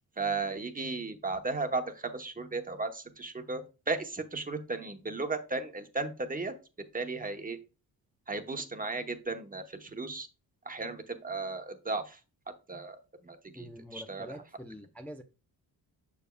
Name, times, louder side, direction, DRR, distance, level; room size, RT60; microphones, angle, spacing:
voice 1, 0.2-6.5 6.9-7.6 8.3-10.3 10.6-12.2 12.7-14.3, right 3 dB, 20° right, 7 dB, 1.0 m, -35 dB
voice 2, 13.5-15.2, equal, 5° left, 4 dB, 0.5 m, -45 dB
7.1 x 6.5 x 2.3 m, 0.31 s
cardioid pair, 95°, 39 cm